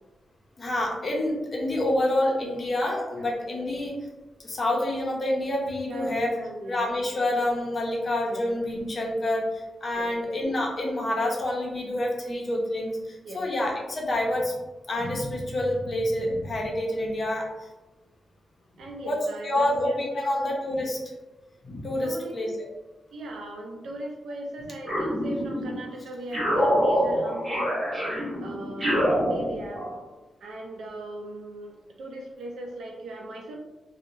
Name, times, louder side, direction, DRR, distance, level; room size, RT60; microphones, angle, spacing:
voice 1, 0.6-3.9 4.4-6.3 6.7-14.5 14.9-17.7 19.0-21.0 21.6-22.5, left 1 dB, 35° left, -2 dB, 0.5 m, -27 dB
voice 2, 5.8-6.8 8.3-8.4 9.9-10.1 13.2-13.4 18.8-20.6 22.0-22.4 23.1-27.6 28.4-29.9 30.4-31.7 32.0-33.6, right 1 dB, 90° right, 1 dB, 0.5 m, -39 dB
sound 1, 24.8-25.8 26.3-30.0, equal, 30° right, 1.1 m, -26 dB
2.8 x 2.0 x 2.5 m, 1.1 s
wide cardioid pair, 165°, 0 cm